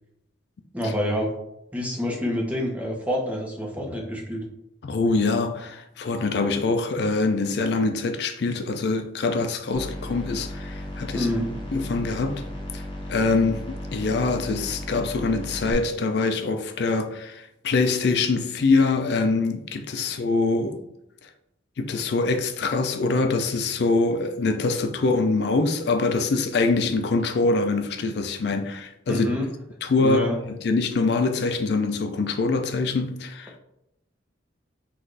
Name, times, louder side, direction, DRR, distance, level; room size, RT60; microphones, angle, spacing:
voice 1, 0.7-1.3 1.7-4.4 11.1-11.5 20.0-20.1 29.1-29.5 30.0-30.4, left 1 dB, 10° right, 0.9 m, -27 dB
voice 2, 4.8-11.3 11.7-12.4 12.7-13.6 13.9-20.8 21.2-21.3 21.8-29.3 29.8-33.6, left 3 dB, 60° left, 0.4 m, -24 dB
sound 1, 9.7-15.7, left 1 dB, 25° left, 0.9 m, -35 dB
6.0 x 2.5 x 3.2 m
head